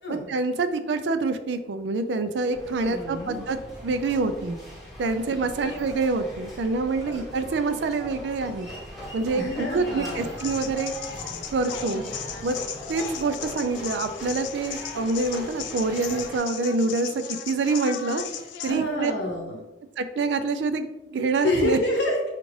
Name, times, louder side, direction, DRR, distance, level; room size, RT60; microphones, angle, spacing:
voice 1, 0.1-3.6 3.8-4.6 5.0-8.7 9.1-10.9 11.5-12.0 12.4-12.6 12.9-18.2 18.6-19.1 20.0-21.8, right 3 dB, 75° right, 9 dB, 0.4 m, -26 dB
sound 1, 2.5-16.4, equal, ahead, 0.9 m, -40 dB
voice 2, 2.8-3.4 5.6-5.7 7.1-7.2 9.3-10.3 11.9-12.0 18.7-19.6 21.4-22.3, left 1 dB, 70° left, 0 dB, 1.0 m, -28 dB
sound 2, 10.4-18.7, left 8 dB, 90° left, 0.3 m, -37 dB
5.1 x 2.4 x 3.1 m, 1.0 s
head